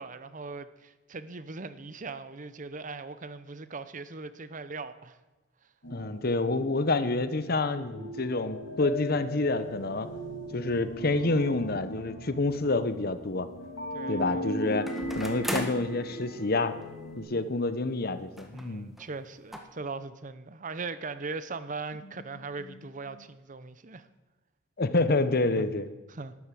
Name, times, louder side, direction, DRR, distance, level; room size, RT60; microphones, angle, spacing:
voice 1, 0.0-5.2 13.9-14.5 18.5-24.1 25.6-25.8 26.1-26.3, right 4 dB, 45° right, 0.8 m, -39 dB
sound 1, 5.8-17.2, equal, 80° left, 3.4 m, -39 dB
voice 2, 5.9-10.1 10.5-13.5 14.1-14.9 15.1-16.8 17.2-19.0 22.3-22.4 23.1-23.2 24.8-25.9, left 2 dB, 55° left, 1.0 m, -28 dB
sound 2, 12.5-12.6 14.9-15.9 16.8-16.9 17.2-17.3 18.4-18.7 19.0-19.1 19.5-19.6, equal, ahead, 1.5 m, -36 dB
12.5 x 12.0 x 7.6 m
head